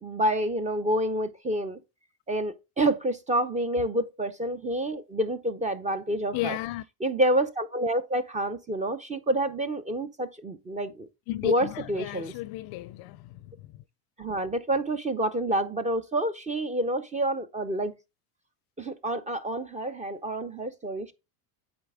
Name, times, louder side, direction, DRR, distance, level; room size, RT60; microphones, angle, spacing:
voice 1, 0.0-1.8 2.3-6.6 7.0-11.1 11.4-12.3 14.2-17.9 18.8-21.1, right 1 dB, 15° right, 0.5 m, -28 dB
voice 2, 6.3-6.8 11.3-13.8, left 17 dB, 50° left, 0.5 m, -34 dB
8.7 x 4.3 x 3.5 m
supercardioid pair, 105°, 49 cm